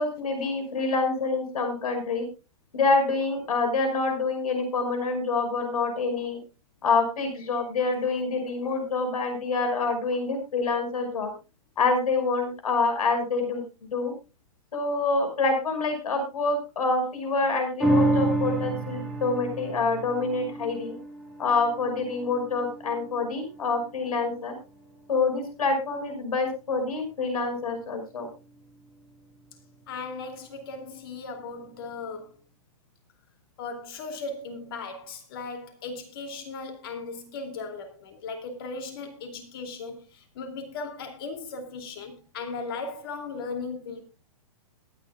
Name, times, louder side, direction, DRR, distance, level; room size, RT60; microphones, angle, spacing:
voice 1, 0.0-2.2 2.7-6.4 6.8-11.3 11.8-14.1 14.7-20.9 21.4-24.6 25.1-28.3, left 3 dB, 80° left, 5.5 m, -26 dB
sound 1, 17.8-24.5 24.9-25.0, right 1 dB, ahead, 1.7 m, -29 dB
voice 2, 29.9-32.4 33.6-44.0, left 4 dB, 40° left, 2.7 m, -37 dB
21.5 x 9.6 x 2.4 m
hypercardioid pair, 175°, 19 cm